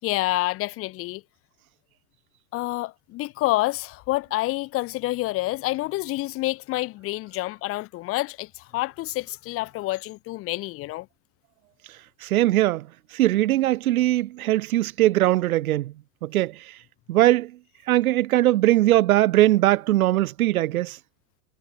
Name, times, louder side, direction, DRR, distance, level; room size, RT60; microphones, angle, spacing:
voice 1, 0.0-1.2 2.5-11.1, left 19 dB, 25° left, 6.3 m, -28 dB
voice 2, 12.2-12.9 13.1-15.9 16.2-16.6 17.1-17.5 17.9-21.0, right 15 dB, 60° right, 4.3 m, -20 dB
supercardioid pair, 175°, 48 cm